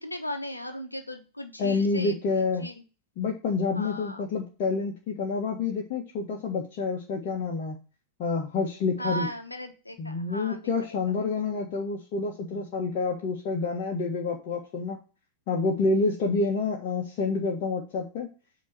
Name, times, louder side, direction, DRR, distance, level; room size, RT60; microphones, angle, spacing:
voice 1, 0.0-2.1 2.6-2.7 3.8-4.2 9.0-10.6, equal, 85° left, 7 dB, 1.1 m, -36 dB
voice 2, 1.6-2.7 3.2-7.8 8.2-9.3 10.0-15.0 15.5-18.3, left 4 dB, 45° left, -2 dB, 1.5 m, -28 dB
8.3 x 3.2 x 6.1 m, 0.33 s
figure-of-eight pair, 90°, 0 cm